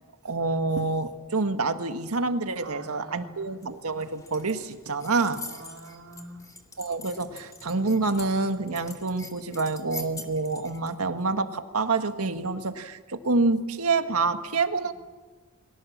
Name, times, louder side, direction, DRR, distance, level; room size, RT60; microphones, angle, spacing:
voice 1, 0.2-5.4 6.8-14.9, right 3 dB, 85° right, 7 dB, 1.6 m, -27 dB
voice 2, 2.6-3.6 5.4-6.5, right 2 dB, 70° right, 1 dB, 4.1 m, -45 dB
sound 1, 3.6-10.9, left 3 dB, 15° left, 2.3 m, -45 dB
29.5 x 23.0 x 7.4 m, 1.4 s
head